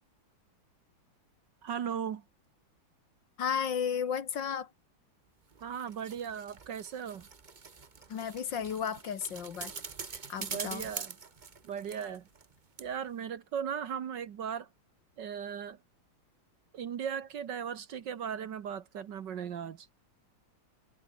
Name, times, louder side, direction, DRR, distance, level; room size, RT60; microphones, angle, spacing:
voice 1, 1.6-2.2 5.6-7.3 10.4-11.1 11.6-12.3 12.8-14.7 15.2-15.8 16.7-19.9, right 8 dB, 60° right, 1.7 m, -37 dB
voice 2, 3.4-4.7 8.1-9.7 10.1-10.9, left 7 dB, 60° left, 2.1 m, -34 dB
sound 1, 5.5-12.5 12.8-12.9, right 5 dB, 30° right, 0.8 m, -44 dB
omnidirectional pair, 2.4 m